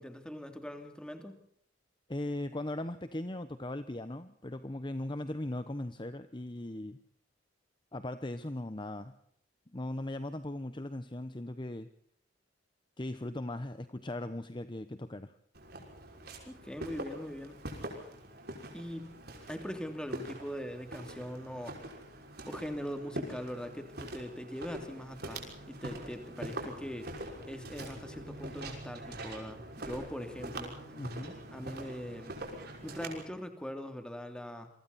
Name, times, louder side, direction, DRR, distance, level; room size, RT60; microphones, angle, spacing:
voice 1, 0.0-1.5 16.5-17.6 18.7-19.1 19.5-21.8 22.5-27.1 27.5-30.8 31.5-32.4 32.8-34.7, equal, 5° left, 6 dB, 3.0 m, -41 dB
voice 2, 2.1-7.0 7.9-9.2 9.7-11.9 13.0-15.3 30.9-31.3, left 1 dB, 25° left, 11 dB, 1.0 m, -38 dB
Walk footsteps, 15.5-33.2, right 1 dB, 55° right, 5.9 m, -44 dB
28.0 x 24.0 x 4.2 m, 0.69 s
head